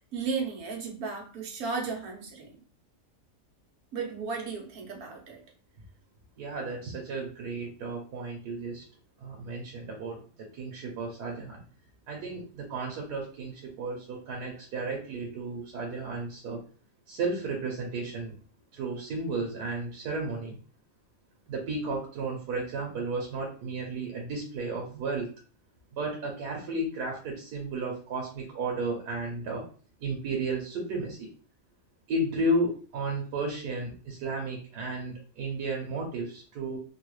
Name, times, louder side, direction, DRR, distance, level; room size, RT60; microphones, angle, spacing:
voice 1, 0.1-2.6 3.9-5.4, right 5 dB, 70° right, 1 dB, 1.4 m, -34 dB
voice 2, 6.4-8.8 9.2-11.6 12.1-16.6 17.1-18.3 18.7-20.6 21.5-25.3 25.9-29.7 30.0-31.2 32.1-36.8, right 2 dB, 90° right, 0 dB, 1.4 m, -33 dB
3.6 x 2.4 x 3.1 m, 0.39 s
omnidirectional pair, 1.7 m